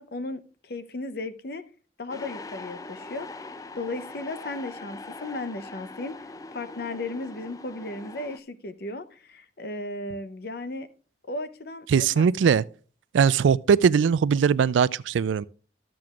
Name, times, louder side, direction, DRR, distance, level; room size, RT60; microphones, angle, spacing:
voice 1, 0.0-1.6 2.0-3.3 3.8-10.9 11.3-12.2, left 2 dB, 55° left, 0.7 m, -35 dB
sound 1, 2.1-8.4, left 3 dB, 20° left, 0.3 m, -41 dB
voice 2, 11.9-12.6 13.1-15.4, right 6 dB, 85° right, 0.3 m, -20 dB
13.0 x 7.7 x 2.4 m
head